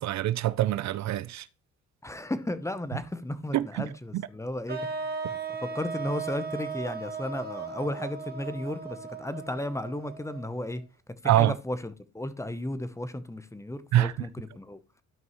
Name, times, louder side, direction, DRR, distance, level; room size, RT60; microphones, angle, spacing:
voice 1, 0.0-1.5 3.5-4.2 11.2-11.6 13.9-14.1, right 13 dB, 65° right, 0.5 m, -25 dB
voice 2, 2.0-10.8 11.2-14.8, left 1 dB, 10° left, 0.9 m, -34 dB
sound 1, 4.7-10.7, right 5 dB, 30° right, 1.6 m, -37 dB
12.5 x 5.3 x 3.1 m
cardioid pair, 90°, 30 cm